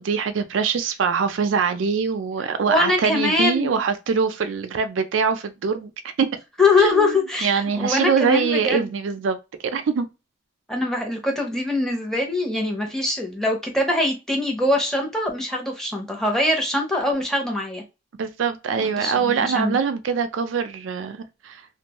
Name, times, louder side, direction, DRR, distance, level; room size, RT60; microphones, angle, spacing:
voice 1, 0.0-5.9 6.2-6.3 6.8-9.4 9.6-10.1 18.2-21.6, right 6 dB, 85° right, 0.4 m, -23 dB
voice 2, 2.7-3.8 6.6-8.9 10.7-17.8 19.0-19.8, left 2 dB, ahead, 0.7 m, -23 dB
2.6 x 2.2 x 2.9 m
head